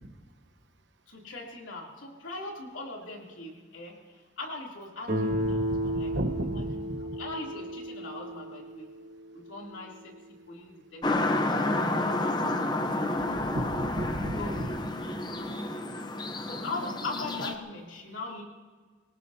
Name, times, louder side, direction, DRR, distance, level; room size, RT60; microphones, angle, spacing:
voice 1, 1.1-8.9 9.3-10.1 10.5-11.0 11.9-12.4 14.3-14.6 16.4-18.4, left 2 dB, 80° left, -1 dB, 3.0 m, -40 dB
Guitar, 5.1-9.9, equal, 50° right, 3.3 m, -33 dB
voice 2, 5.4-7.0 13.2-14.8, right 1 dB, 65° right, 8 dB, 1.1 m, -34 dB
sound 1, 11.0-17.5, left 2 dB, 20° left, 0.7 m, -30 dB
25.5 x 18.0 x 2.8 m, 1.5 s
head